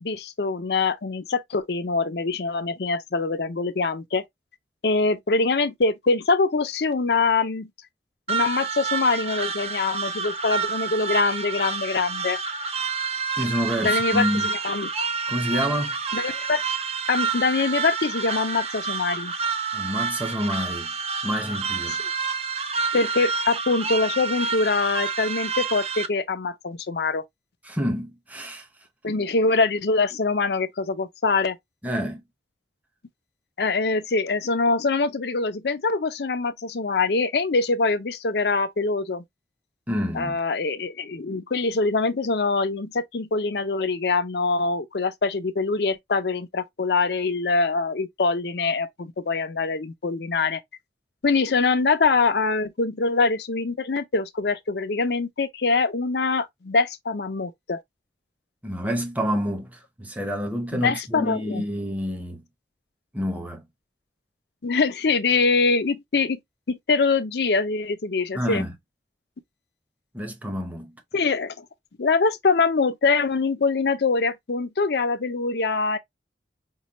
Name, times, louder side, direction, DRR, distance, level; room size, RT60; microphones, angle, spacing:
voice 1, 0.0-4.2 4.8-7.7 8.3-12.4 13.8-14.9 16.1-16.6 17.1-19.3 22.9-27.2 29.0-31.6 33.6-39.2 40.1-50.6 51.2-57.8 60.7-61.6 64.6-66.4 66.7-68.6 71.1-71.6 72.0-76.0, left 4 dB, 65° left, 0.6 m, -24 dB
sound 1, 8.3-26.1, right 5 dB, 35° right, 0.5 m, -28 dB
voice 2, 13.4-14.5 15.3-16.0 19.7-20.9 21.2-22.0 27.6-28.7 31.8-32.2 39.9-40.4 58.6-62.4 63.1-63.6 68.3-68.7 70.1-70.9, equal, 10° right, 0.8 m, -28 dB
5.4 x 2.3 x 2.9 m
head